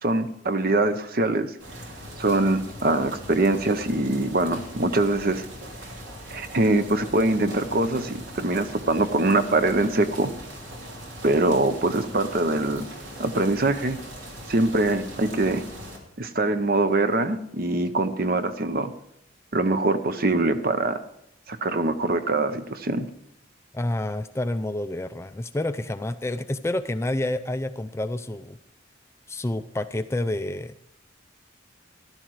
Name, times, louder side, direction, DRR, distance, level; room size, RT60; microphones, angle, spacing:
voice 1, 0.0-1.5 2.2-5.5 6.3-10.3 11.2-12.9 13.2-14.0 14.5-15.6 16.2-18.9 19.5-21.0 21.5-23.1, right 2 dB, 50° right, 10 dB, 0.8 m, -23 dB
sound 1, 1.6-16.0, equal, 75° right, 3.1 m, -40 dB
voice 2, 23.7-28.6 29.3-30.7, left 1 dB, 15° left, 10 dB, 0.4 m, -29 dB
14.5 x 12.0 x 4.7 m, 0.75 s
head